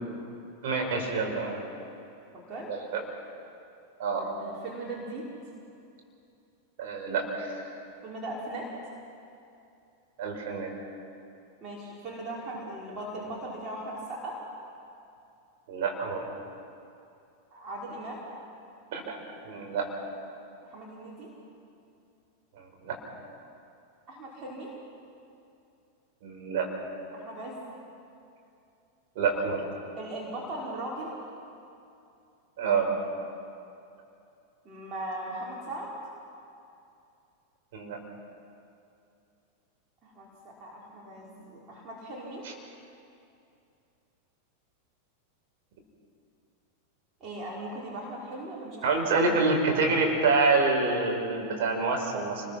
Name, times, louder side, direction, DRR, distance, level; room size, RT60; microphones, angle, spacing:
voice 1, 0.6-1.7 2.7-3.0 4.0-4.4 6.8-7.6 10.2-10.7 15.7-16.2 18.9-19.2 19.4-19.9 22.5-23.0 26.2-26.7 29.1-29.6 32.6-32.9 37.7-38.0 42.4-42.5 48.8-52.4, right 4 dB, 50° right, 1 dB, 5.0 m, -27 dB
voice 2, 2.3-2.7 4.2-5.3 8.0-8.7 11.6-14.4 17.5-18.2 20.7-21.3 24.1-24.7 27.1-27.6 30.0-31.2 34.6-35.9 40.0-42.4 47.2-49.3, right 1 dB, 30° right, -4 dB, 5.1 m, -39 dB
28.5 x 21.5 x 6.0 m, 2.6 s
figure-of-eight pair, 90°, 0 cm